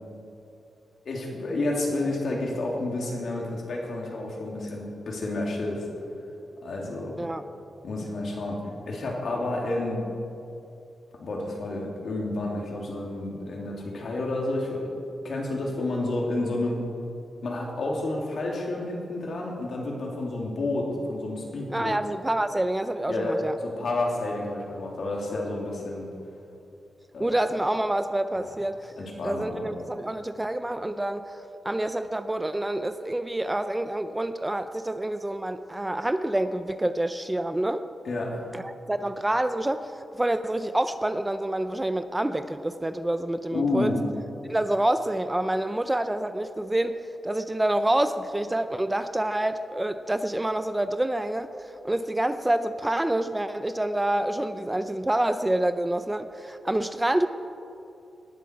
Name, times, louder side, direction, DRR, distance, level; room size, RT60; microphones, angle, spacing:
voice 1, 1.0-5.9 6.6-7.2 7.8-10.1 11.2-14.9 15.2-16.8 17.4-22.0 23.1-26.1 27.1-27.3 28.4-28.5 29.0-29.6 38.0-38.5 43.5-44.1, left 2 dB, 65° left, -1 dB, 3.1 m, -30 dB
voice 2, 21.7-23.6 27.2-28.9 29.2-37.9 38.5-43.9 44.5-57.3, right 1 dB, 15° right, 11 dB, 0.5 m, -27 dB
18.5 x 11.5 x 4.7 m, 2.7 s
cardioid pair, 95°, 0 cm